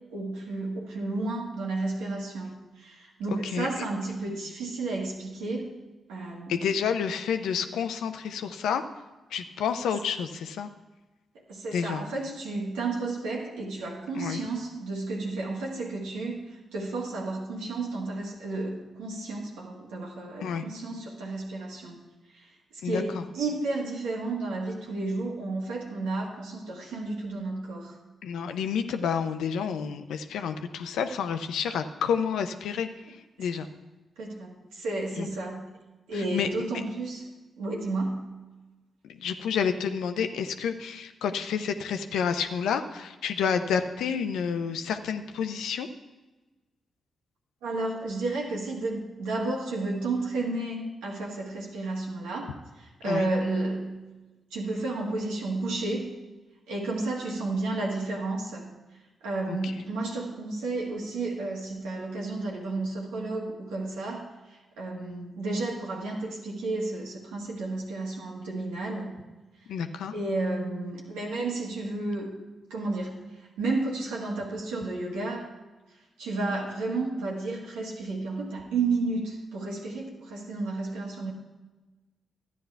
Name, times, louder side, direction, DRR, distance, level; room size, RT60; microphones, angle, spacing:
voice 1, 0.1-5.8 6.1-6.6 11.3-22.0 22.3-28.0 34.2-35.7 36.1-37.2 37.6-38.3 47.6-54.0 54.5-56.1 56.7-58.7 59.2-69.2 70.1-72.4 72.7-75.5 76.2-81.3, right 2 dB, 90° right, -2 dB, 1.9 m, -32 dB
voice 2, 3.3-3.8 6.5-8.8 9.3-10.7 11.7-12.0 14.1-14.4 20.4-20.6 22.8-23.2 28.2-33.7 35.2-35.3 36.1-36.5 39.0-45.9 53.0-53.3 59.5-59.7 69.7-70.1, left 7 dB, 80° left, 8 dB, 0.6 m, -29 dB
12.5 x 9.5 x 3.4 m, 1.2 s
supercardioid pair, 45°, 0 cm